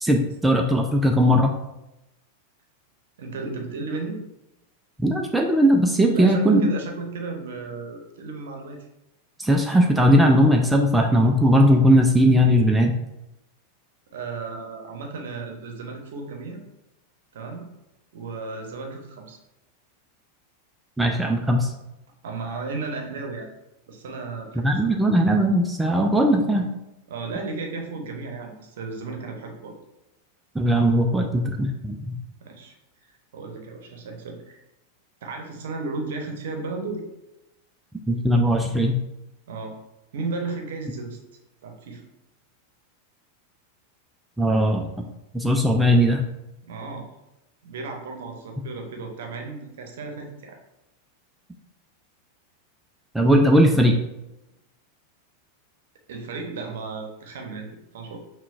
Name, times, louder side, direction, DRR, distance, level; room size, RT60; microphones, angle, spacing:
voice 1, 0.0-1.5 5.0-6.7 9.4-12.9 21.0-21.7 24.6-26.7 30.6-32.2 38.1-39.0 44.4-44.9 45.3-46.2 53.1-54.0, equal, 5° right, 1 dB, 0.3 m, -19 dB
voice 2, 3.2-4.2 6.1-8.9 14.1-16.6 17.3-17.7 18.1-19.4 22.2-23.5 23.9-25.0 27.1-29.7 32.4-32.7 33.1-34.6 35.2-37.0 39.5-39.8 40.1-41.2 41.6-42.0 46.6-47.1 47.6-50.6 56.1-57.7 57.9-58.2, right 3 dB, 55° right, 2 dB, 0.7 m, -34 dB
5.6 x 2.2 x 2.4 m, 0.91 s
figure-of-eight pair, 90°, 0 cm